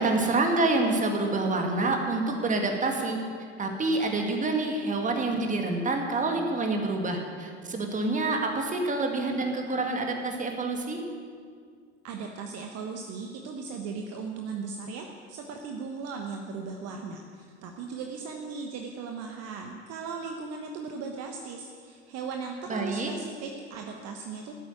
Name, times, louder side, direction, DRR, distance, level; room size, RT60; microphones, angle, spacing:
voice 1, 0.0-3.2 3.6-11.0 22.7-23.1, right 2 dB, 20° right, 3 dB, 2.3 m, -27 dB
voice 2, 12.0-24.5, right 5 dB, 45° right, 3 dB, 1.3 m, -37 dB
12.0 x 8.6 x 9.1 m, 2.1 s
hypercardioid pair, 85°, 35 cm